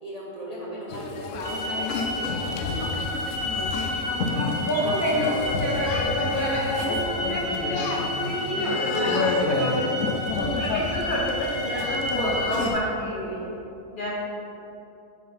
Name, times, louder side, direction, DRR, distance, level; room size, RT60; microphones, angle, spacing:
voice 1, 0.0-3.0, right 1 dB, 35° right, -5 dB, 0.6 m, -38 dB
sound 1, 0.9-12.8, left 4 dB, 65° left, 0.9 m, -30 dB
sound 2, 1.4-12.7, left 1 dB, 65° right, 1.8 m, -31 dB
voice 2, 3.9-13.4 13.9-14.1, equal, 35° left, -5 dB, 1.3 m, -28 dB
7.5 x 3.8 x 5.3 m, 2.9 s
omnidirectional pair, 1.5 m